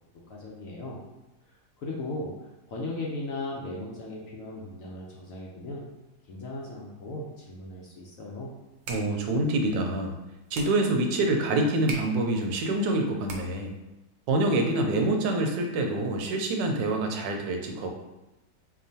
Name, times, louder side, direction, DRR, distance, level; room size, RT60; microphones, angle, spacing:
voice 1, 0.3-1.0 1.8-2.3 2.7-5.8 6.3-8.5, left 2 dB, 65° left, -3 dB, 0.9 m, -37 dB
sound 1, 8.6-13.8, right 3 dB, 65° right, 0.9 m, -44 dB
voice 2, 8.9-10.1 10.5-13.7 14.3-17.9, right 2 dB, 90° right, 3 dB, 1.3 m, -26 dB
4.2 x 2.9 x 2.7 m, 1.0 s
omnidirectional pair, 1.9 m